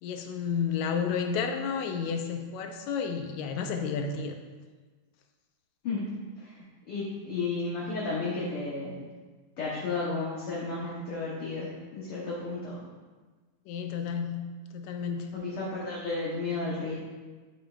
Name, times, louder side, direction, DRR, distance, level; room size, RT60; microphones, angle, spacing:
voice 1, 0.0-4.4 13.7-14.4 14.7-15.3, left 6 dB, 80° left, 5 dB, 1.9 m, -31 dB
voice 2, 6.4-9.0 9.6-12.8 15.3-16.9, left 3 dB, 55° left, -6 dB, 1.7 m, -33 dB
10.0 x 7.3 x 2.4 m, 1.3 s
omnidirectional pair, 3.6 m